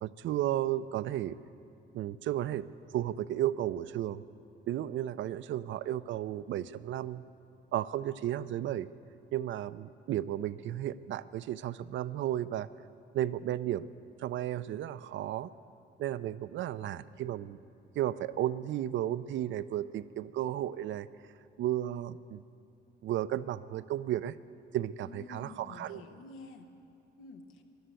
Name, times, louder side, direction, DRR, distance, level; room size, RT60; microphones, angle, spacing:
voice 1, 0.0-1.4 1.9-2.7 2.9-4.2 4.7-7.2 7.7-8.9 9.3-12.7 13.1-13.9 14.2-15.5 16.0-17.6 17.9-21.1 21.6-22.4 23.0-24.4 24.7-26.0, right 12 dB, 70° right, 15 dB, 0.5 m, -33 dB
voice 2, 25.0-26.7 27.2-27.6, left 3 dB, 85° left, 6 dB, 1.2 m, -49 dB
13.5 x 11.5 x 8.2 m, 2.5 s
cardioid pair, 90°, 20 cm